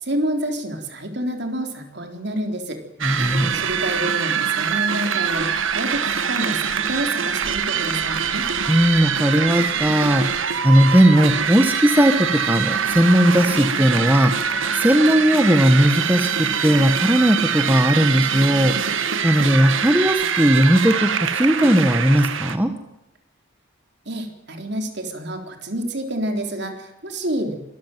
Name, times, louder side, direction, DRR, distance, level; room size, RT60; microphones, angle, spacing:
voice 1, 0.0-2.8 3.5-8.4 24.1-27.6, right 1 dB, 55° right, 5 dB, 3.8 m, -28 dB
voice 2, 3.0-3.6 8.7-10.3 10.6-14.4 14.7-22.7, equal, 10° right, 6 dB, 1.4 m, -17 dB
sound 1, 3.0-22.6, right 7 dB, 70° right, 1.6 m, -24 dB
24.0 x 14.0 x 9.2 m, 0.89 s
head